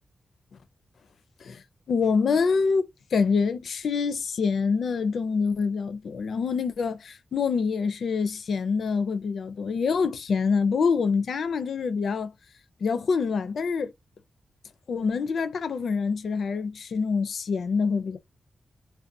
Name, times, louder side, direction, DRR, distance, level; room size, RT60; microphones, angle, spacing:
voice 1, 1.9-12.3 12.8-13.9 14.9-18.2, left 5 dB, 75° left, 0.4 m, -26 dB
2.5 x 2.1 x 2.6 m
cardioid pair, 75°, 0 cm